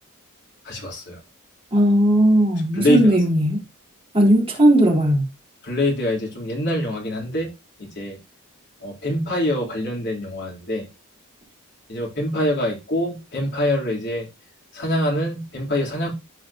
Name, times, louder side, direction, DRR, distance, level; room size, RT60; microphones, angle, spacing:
voice 1, 0.6-1.2 2.7-3.1 5.6-7.5 7.8-8.2 8.8-10.9 11.9-14.3 14.7-16.1, left 1 dB, 55° left, 3.4 m, -24 dB
voice 2, 1.7-3.6 4.1-5.3, right 1 dB, 25° right, 3.7 m, -17 dB
14.0 x 5.0 x 2.8 m
head